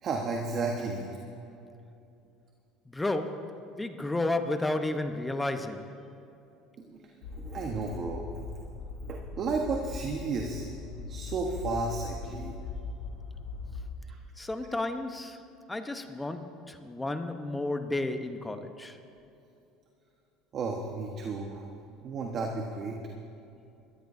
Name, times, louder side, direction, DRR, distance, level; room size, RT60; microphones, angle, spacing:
voice 1, 0.0-1.2 6.8-8.3 9.0-10.7 11.1-12.5 14.0-14.2 20.5-21.7 22.0-23.0, right 3 dB, 45° right, 1.3 m, -33 dB
voice 2, 2.9-5.9 14.4-15.4 15.7-19.0, left 2 dB, 10° left, 1.0 m, -32 dB
sound 1, 7.2-13.9, left 3 dB, 80° left, 2.3 m, -40 dB
21.5 x 13.5 x 2.7 m
supercardioid pair, 90°, 0 cm